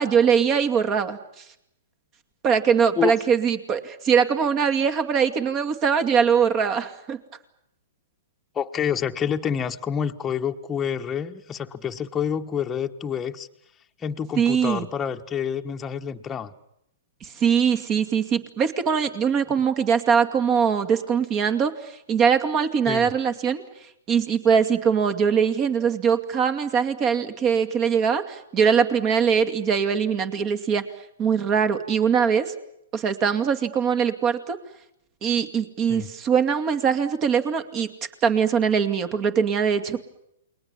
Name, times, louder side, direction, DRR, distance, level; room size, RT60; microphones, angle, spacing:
voice 1, 0.0-1.4 2.4-7.2 14.4-14.9 17.2-23.6 24.1-30.8 31.2-32.5 32.9-34.6 35.2-37.9 38.2-40.0, right 7 dB, 30° right, 9 dB, 2.4 m, -22 dB
voice 2, 8.5-13.5 14.0-16.5 22.9-23.1 35.9-36.1, left 8 dB, 15° left, 4 dB, 1.3 m, -28 dB
29.5 x 21.5 x 7.3 m, 0.79 s
hypercardioid pair, 125°, 0 cm